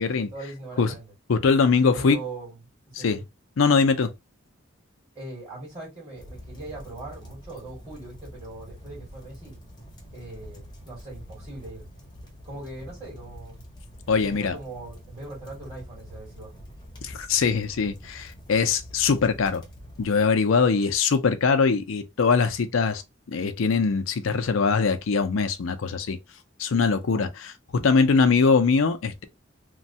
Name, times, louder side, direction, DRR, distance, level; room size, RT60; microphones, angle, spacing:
voice 1, 0.0-1.1 1.9-2.6 2.9-3.1 5.2-9.5 10.1-11.8 12.4-13.7 14.2-16.5 27.1-27.3, right 2 dB, 30° right, 1.9 m, -40 dB
voice 2, 1.3-2.2 3.0-3.2 3.6-4.1 14.1-14.5 17.0-19.6 20.0-23.0 23.3-26.2 26.6-29.2, left 5 dB, 80° left, 0.5 m, -22 dB
sound 1, 6.1-20.1, equal, 20° left, 0.7 m, -45 dB
3.1 x 2.2 x 2.7 m
head